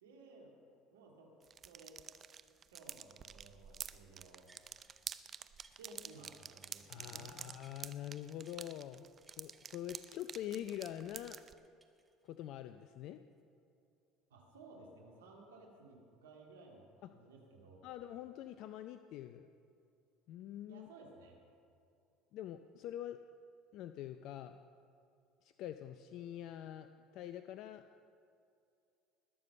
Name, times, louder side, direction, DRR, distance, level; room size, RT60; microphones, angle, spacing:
voice 1, 0.0-0.5 0.9-1.3 1.6-2.0 2.7-4.5 5.8-7.4 14.3-17.9 20.7-21.4, right 2 dB, 90° right, 0 dB, 2.3 m, -57 dB
sound 1, 1.4-11.5, right 7 dB, 40° right, 0.6 m, -49 dB
sound 2, 4.5-5.1 5.4-7.8 8.2-10.1 10.5-12.5 12.9-13.0, right 2 dB, 15° right, 1.8 m, -68 dB
voice 2, 6.9-9.1 9.4-11.4 12.2-13.2 17.8-19.5 20.3-20.9 22.3-23.2 23.7-24.5 25.4-26.9 27.1-27.8, left 11 dB, 65° left, 10 dB, 0.5 m, -45 dB
20.5 x 6.9 x 6.7 m, 2.5 s
hypercardioid pair, 75°, 0 cm